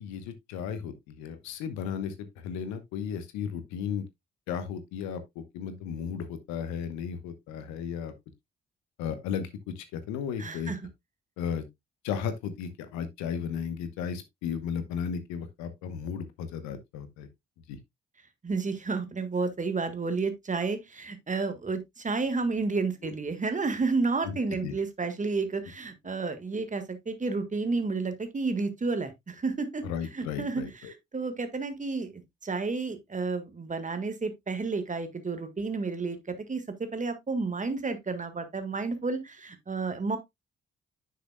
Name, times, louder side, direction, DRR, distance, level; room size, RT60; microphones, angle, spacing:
voice 1, 0.0-4.0 4.5-8.1 9.0-9.5 9.8-10.7 11.4-11.7 12.0-17.3 17.7-17.8 23.0-23.1 24.2-24.3 24.6-24.7 29.8-30.9, left 7 dB, 70° left, 1.1 m, -35 dB
voice 2, 10.4-10.8 18.4-29.8 30.1-36.6 36.9-40.2, right 4 dB, 25° right, 1.7 m, -31 dB
9.6 x 6.5 x 2.2 m
figure-of-eight pair, 40°, 29 cm